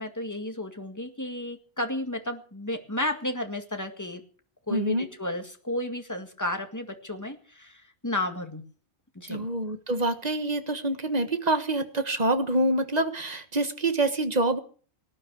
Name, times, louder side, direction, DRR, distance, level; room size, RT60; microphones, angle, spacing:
voice 1, 0.0-4.2 4.7-7.7 8.0-8.6 9.2-9.5, left 1 dB, 15° left, 5 dB, 2.0 m, -32 dB
voice 2, 4.7-5.1 9.3-14.6, right 2 dB, 35° right, 8 dB, 1.5 m, -26 dB
18.5 x 9.9 x 6.3 m, 0.43 s
omnidirectional pair, 1.2 m